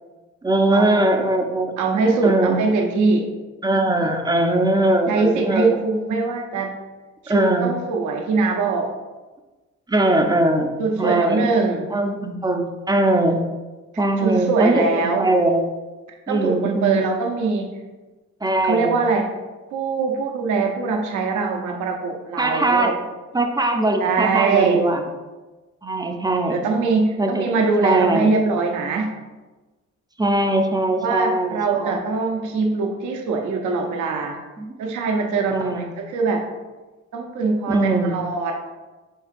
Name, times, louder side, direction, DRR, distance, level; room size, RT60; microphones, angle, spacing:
voice 1, 0.4-1.7 2.2-2.6 3.6-5.7 7.3-7.7 9.9-11.5 11.9-13.4 14.0-15.6 16.3-17.1 18.4-19.0 22.4-22.9 23.3-25.0 25.8-26.7 27.2-27.5 27.8-28.3 30.2-32.0 34.6-34.8 35.5-35.9 37.7-38.2, right 2 dB, 15° right, 4 dB, 0.5 m, -21 dB
voice 2, 1.8-3.3 5.1-6.7 7.2-8.9 10.8-11.9 14.2-15.3 16.3-17.7 18.6-19.3 19.7-23.0 24.0-24.8 26.5-29.1 31.0-34.4 34.8-36.5 37.1-38.6, right 4 dB, 75° right, 2 dB, 0.7 m, -22 dB
5.4 x 3.7 x 2.5 m, 1.2 s
cardioid pair, 90°, 30 cm